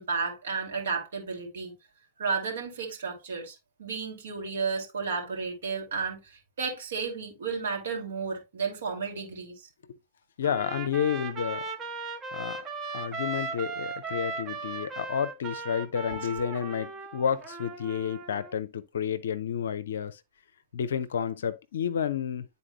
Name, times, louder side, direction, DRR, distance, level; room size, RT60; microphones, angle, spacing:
voice 1, 0.0-1.7 2.2-9.7, right 5 dB, 65° right, 2.8 m, -33 dB
voice 2, 10.4-11.6 12.3-12.6 12.9-20.2 20.7-22.4, left 8 dB, 65° left, 0.5 m, -30 dB
Trumpet, 10.4-18.6, right 4 dB, 25° right, 1.3 m, -37 dB
11.0 x 4.1 x 2.3 m
figure-of-eight pair, 90°, 0 cm